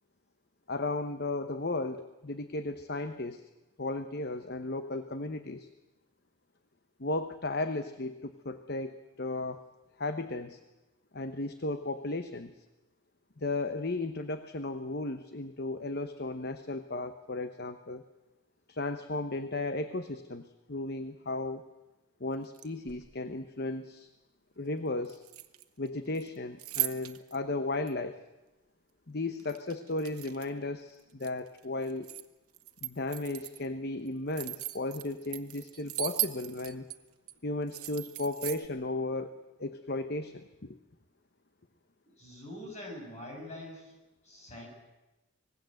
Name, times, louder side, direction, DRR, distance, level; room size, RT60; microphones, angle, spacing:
voice 1, 0.7-3.4 3.8-5.7 7.0-9.6 10.0-10.6 11.1-12.6 13.4-18.0 18.7-21.6 22.2-24.1 24.6-25.2 25.8-28.2 29.1-32.1 32.8-36.9 37.4-40.8, left 2 dB, 45° left, 9 dB, 1.0 m, -35 dB
sound 1, 22.4-23.2 25.1-25.9 26.2-27.4 27.9-28.0 29.4-30.6 31.0-32.3 32.5-33.7 34.1-37.0 37.3-37.4 37.7-38.7, right 17 dB, 90° right, 1.3 m, -38 dB
voice 2, 42.2-43.9 44.2-44.7, left 1 dB, 30° left, 1 dB, 7.3 m, -44 dB
25.5 x 20.0 x 7.8 m, 1.1 s
head